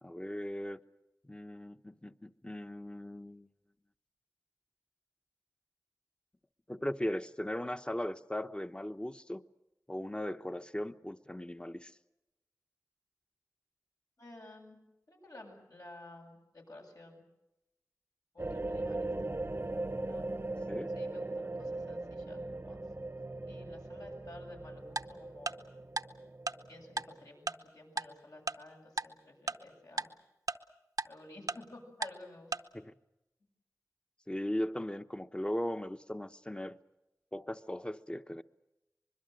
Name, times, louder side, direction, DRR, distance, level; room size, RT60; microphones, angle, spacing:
voice 1, 0.0-0.8 1.2-3.5 6.7-9.4 9.9-11.9 20.7-20.9 32.7-32.9 34.3-36.8 37.3-38.4, left 1 dB, 15° left, 0.9 m, -38 dB
voice 2, 14.2-14.8 15.1-17.2 18.3-19.3 20.0-20.5 20.9-22.8 23.5-25.7 26.7-30.1 31.0-32.5, left 2 dB, 75° left, 7.6 m, -53 dB
sound 1, 18.4-27.3, right 2 dB, 40° right, 0.8 m, -39 dB
Tick-tock, 25.0-25.1 25.5-25.6 26.0-26.1 26.5-26.6 27.0-27.1 27.5-27.6 28.0-28.1 28.5-28.6 29.0-29.1 29.5-29.6 30.0-30.1 30.5-30.6 31.0-31.1 31.5-31.6 32.0-32.1 32.5-32.6, right 3 dB, 75° right, 0.8 m, -33 dB
24.5 x 22.0 x 7.8 m
wide cardioid pair, 60°, 6 cm